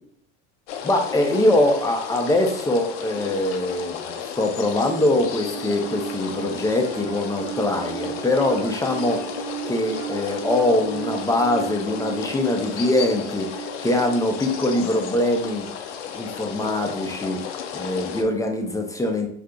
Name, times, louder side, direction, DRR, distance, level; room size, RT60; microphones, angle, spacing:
sound 1, 0.7-18.2, left 7 dB, 80° left, 0.5 m, -34 dB
voice 1, 0.8-9.3 9.6-15.7 16.1-17.4 17.7-19.3, left 1 dB, 10° left, 3 dB, 0.5 m, -23 dB
Piano, 4.7-16.1, right 11 dB, 10° right, 0.9 m, -36 dB
2.7 x 2.5 x 3.5 m, 0.64 s
hypercardioid pair, 90°, 35 cm